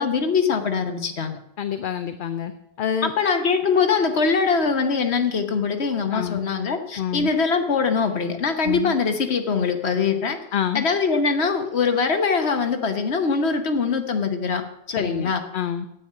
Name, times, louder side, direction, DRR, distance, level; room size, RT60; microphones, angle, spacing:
voice 1, 0.0-1.4 3.0-10.4 10.7-14.6 15.0-15.4, left 5 dB, 85° left, 6 dB, 1.4 m, -22 dB
voice 2, 1.6-2.5 2.8-3.1 6.1-6.4 7.0-7.3 8.6-8.9 10.5-10.8 14.9-15.9, left 9 dB, 60° left, 10 dB, 0.7 m, -27 dB
9.6 x 8.9 x 6.7 m, 0.80 s
omnidirectional pair, 1.1 m